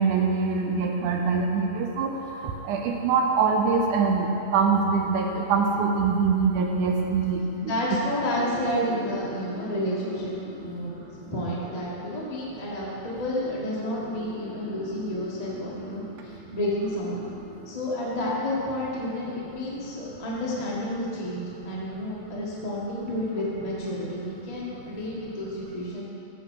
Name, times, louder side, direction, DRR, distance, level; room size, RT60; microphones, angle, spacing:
voice 1, 0.0-2.1 2.7-7.4, right 5 dB, 85° right, 2 dB, 2.2 m, -23 dB
sound 1, 6.1-18.5, equal, 30° right, 2.5 m, -44 dB
voice 2, 7.6-10.3 10.6-10.9 11.3-17.2 17.6-26.0, left 1 dB, 25° left, -6 dB, 0.7 m, -30 dB
14.5 x 5.7 x 4.8 m, 2.9 s
omnidirectional pair, 3.5 m